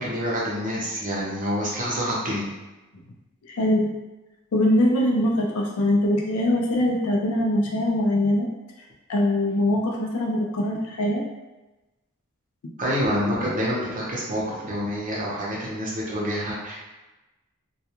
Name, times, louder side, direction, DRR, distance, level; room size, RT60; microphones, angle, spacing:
voice 1, 0.0-2.5 12.8-16.8, equal, 40° right, -5 dB, 0.7 m, -27 dB
voice 2, 3.5-3.9 4.5-8.5 9.1-11.2, left 1 dB, 75° left, 0 dB, 0.4 m, -22 dB
2.3 x 2.2 x 2.8 m, 1.1 s
head